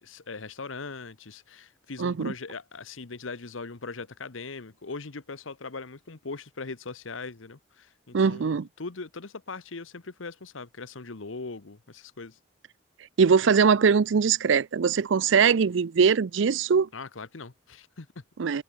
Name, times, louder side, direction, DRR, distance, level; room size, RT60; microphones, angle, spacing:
voice 1, 0.0-12.4 16.9-18.2, left 4 dB, 80° left, 1.1 m, -40 dB
voice 2, 2.0-2.3 8.1-8.7 13.2-16.9 18.4-18.6, right 6 dB, 70° right, 0.5 m, -21 dB
head